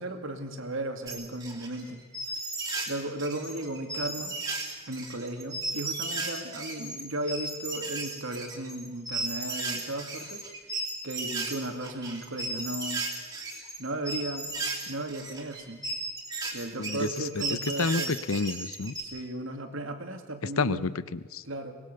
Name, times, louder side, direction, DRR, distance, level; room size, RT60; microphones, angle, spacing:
voice 1, 0.0-2.0 2.4-2.5 2.9-4.3 4.9-10.4 11.0-13.0 13.8-14.5 14.9-15.9 16.5-18.2 19.0-20.9 21.4-21.8, right 1 dB, 70° right, 6 dB, 2.5 m, -35 dB
sound 1, 1.1-2.9 3.2-19.0, right 2 dB, 15° right, 3.0 m, -35 dB
voice 2, 16.8-18.9 20.6-21.4, left 4 dB, 80° left, 16 dB, 0.8 m, -30 dB
24.0 x 20.5 x 6.9 m, 1.3 s
head